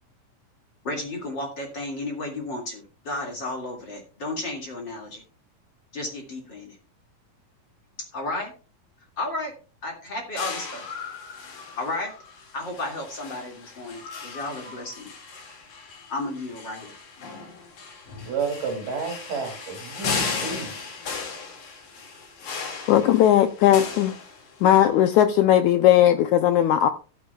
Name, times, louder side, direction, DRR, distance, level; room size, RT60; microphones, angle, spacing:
voice 1, 0.8-5.2 5.9-6.8 8.1-8.5 9.2-9.5 9.8-10.9 11.7-12.1 12.5-15.1 16.1-17.0, left 2 dB, 35° left, 2.6 m, -33 dB
sound 1, 10.4-24.8, left 4 dB, 60° left, 3.6 m, -36 dB
voice 2, 18.3-20.7, right 5 dB, 70° right, 4.1 m, -31 dB
voice 3, 22.9-24.2 24.6-26.9, left 11 dB, 75° left, 1.8 m, -18 dB
13.5 x 12.5 x 2.3 m
omnidirectional pair, 3.9 m